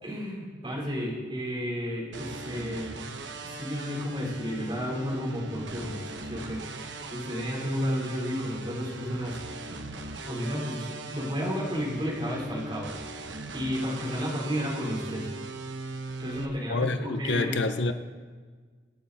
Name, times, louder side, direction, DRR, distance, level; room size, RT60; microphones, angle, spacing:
voice 1, 0.0-3.0 3.4-6.7 7.1-9.4 10.2-13.2 13.5-15.3 16.2-17.6, equal, 25° right, -4 dB, 4.1 m, -32 dB
sound 1, 2.1-16.5, right 2 dB, 75° right, 1.2 m, -39 dB
voice 2, 16.7-17.9, left 3 dB, 70° left, 9 dB, 0.8 m, -27 dB
25.0 x 9.3 x 4.2 m, 1.6 s
head